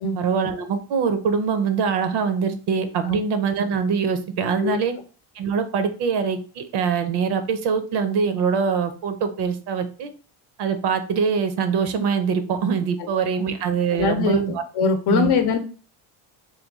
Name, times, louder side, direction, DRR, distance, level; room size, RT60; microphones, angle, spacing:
voice 1, 0.2-4.9 5.3-10.1 10.6-14.6 15.1-15.3, right 6 dB, 60° right, 9 dB, 0.6 m, -23 dB
voice 2, 13.9-14.4 14.7-15.6, left 5 dB, 55° left, 6 dB, 0.7 m, -21 dB
3.2 x 2.3 x 3.5 m, 0.37 s
cardioid pair, 140°, 45 cm